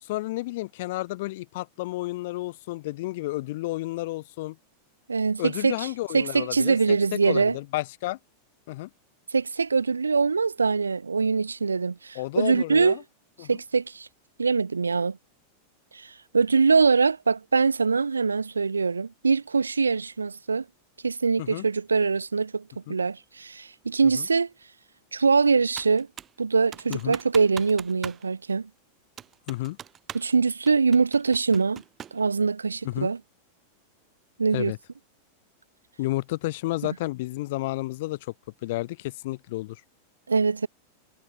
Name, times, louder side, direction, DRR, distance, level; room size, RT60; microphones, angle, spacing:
voice 1, 0.0-4.6 5.4-8.2 8.7-8.9 12.2-13.0 13.4-13.6 21.4-21.7 22.9-23.0 24.1-24.3 26.9-27.2 29.5-29.8 32.8-33.1 34.5-34.8 36.0-38.3 38.6-39.8, left 19 dB, 50° left, 1.9 m, -31 dB
voice 2, 5.1-5.7 6.1-7.6 9.3-13.0 13.5-14.1 14.4-15.2 15.9-20.6 21.0-22.6 22.9-24.5 25.1-26.1 26.4-28.7 30.1-31.8 32.1-33.2 34.4-34.7 40.3-40.7, right 4 dB, 75° right, 0.6 m, -23 dB
Computer keyboard, 25.8-26.4 26.7-28.2 28.5-28.6 29.2-30.3 30.7-32.2, right 9 dB, 25° right, 7.5 m, -41 dB
figure-of-eight pair, 90°, 0 cm